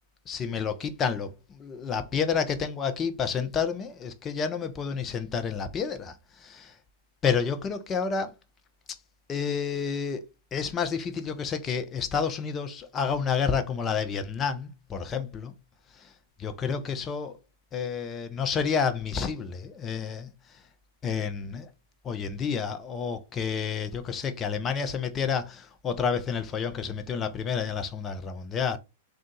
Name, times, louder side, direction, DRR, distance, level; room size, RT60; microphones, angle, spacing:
voice 1, 0.3-6.7 7.2-8.3 9.3-10.2 10.5-15.5 16.0-16.1 16.4-17.3 17.7-20.3 21.0-21.7 22.0-28.8, left 6 dB, 25° left, 0.7 m, -30 dB
3.7 x 2.5 x 4.0 m
hypercardioid pair, 100°, 0 cm